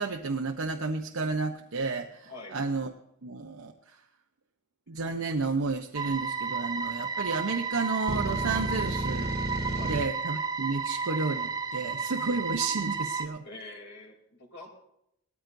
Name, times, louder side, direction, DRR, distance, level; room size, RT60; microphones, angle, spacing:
voice 1, 0.0-2.9 3.2-4.0 4.9-9.3 9.8-13.4, right 4 dB, 75° right, 2 dB, 0.8 m, -31 dB
voice 2, 2.2-2.6 9.7-10.0 13.4-14.7, left 2 dB, 55° left, 1 dB, 3.1 m, -45 dB
sound 1, 6.0-13.3, right 5 dB, 20° right, 0.5 m, -32 dB
sound 2, 8.1-10.0, right 1 dB, 50° right, 1.3 m, -32 dB
19.0 x 13.5 x 2.6 m, 0.78 s
head